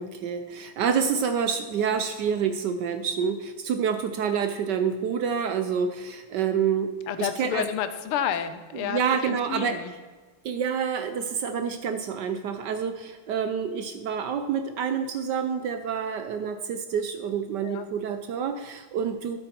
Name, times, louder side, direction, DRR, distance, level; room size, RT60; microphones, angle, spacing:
voice 1, 0.0-6.9 7.2-7.7 8.7-9.8 10.4-19.4, right 7 dB, 75° right, 9 dB, 1.0 m, -28 dB
voice 2, 7.1-9.9 17.6-17.9, left 9 dB, 80° left, 12 dB, 1.6 m, -30 dB
13.0 x 7.8 x 4.4 m, 1.5 s
omnidirectional pair, 2.4 m